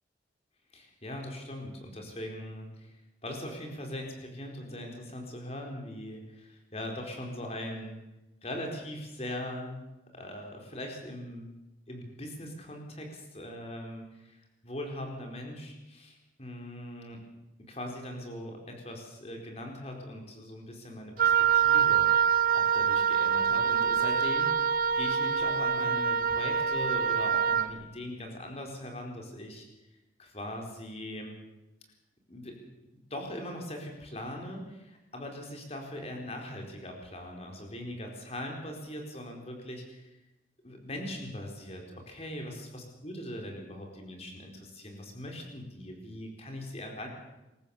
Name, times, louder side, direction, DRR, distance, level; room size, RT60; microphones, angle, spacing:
voice 1, 0.7-2.9 3.2-8.0 8.4-9.9 10.1-11.5 11.9-17.2 17.7-29.7 30.2-31.4 32.3-32.7 33.1-40.2 40.6-47.1, left 1 dB, 35° left, 2 dB, 4.4 m, -40 dB
Wind instrument woodwind instrument, 21.2-27.7, right 7 dB, 50° right, 0.9 m, -25 dB
26.5 x 14.5 x 7.2 m, 0.98 s
head